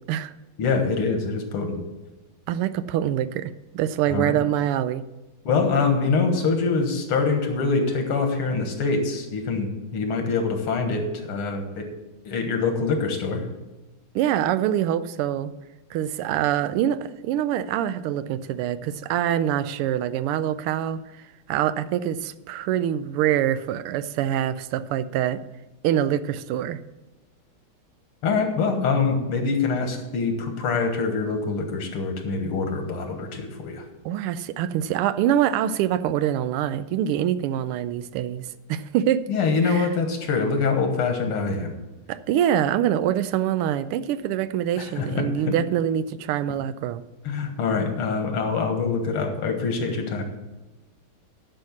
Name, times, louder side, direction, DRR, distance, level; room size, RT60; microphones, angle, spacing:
voice 1, 0.6-1.8 4.1-4.4 5.5-11.9 12.3-13.4 28.2-33.9 39.3-41.7 44.8-45.5 47.2-50.2, left 4 dB, 85° left, 5 dB, 2.3 m, -24 dB
voice 2, 2.5-5.0 14.1-15.5 15.9-21.0 21.5-25.4 25.8-26.8 34.0-39.3 39.6-39.9 42.1-47.0, right 11 dB, 90° right, 14 dB, 1.5 m, -25 dB
11.0 x 5.6 x 7.2 m, 1.1 s
omnidirectional pair, 2.4 m